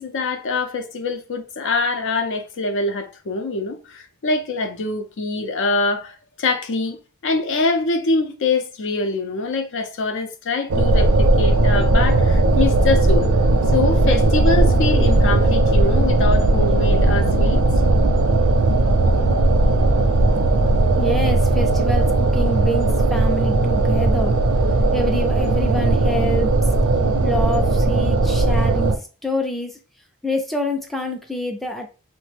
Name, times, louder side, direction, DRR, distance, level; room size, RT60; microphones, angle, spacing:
voice 1, 0.0-13.3 13.7-17.6, left 3 dB, 60° left, 0.5 m, -24 dB
sound 1, 10.7-29.0, right 2 dB, 85° right, 0.5 m, -17 dB
voice 2, 21.0-24.3 24.9-26.5 27.2-29.8 30.2-31.9, left 1 dB, ahead, 0.3 m, -27 dB
3.1 x 2.1 x 3.2 m
head